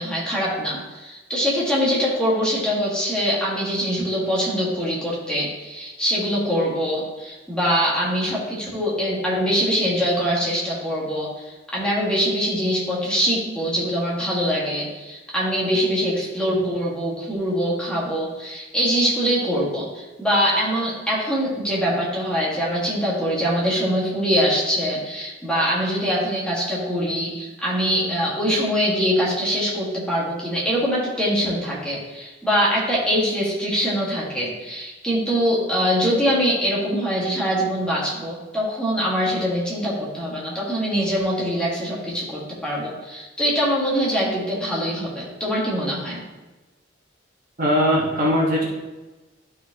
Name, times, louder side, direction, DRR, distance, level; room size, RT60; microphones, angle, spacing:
voice 1, 0.0-46.2, equal, 5° left, -6 dB, 1.7 m, -23 dB
voice 2, 47.6-48.7, equal, 50° right, -3 dB, 1.3 m, -20 dB
11.5 x 4.3 x 2.9 m, 1.2 s
head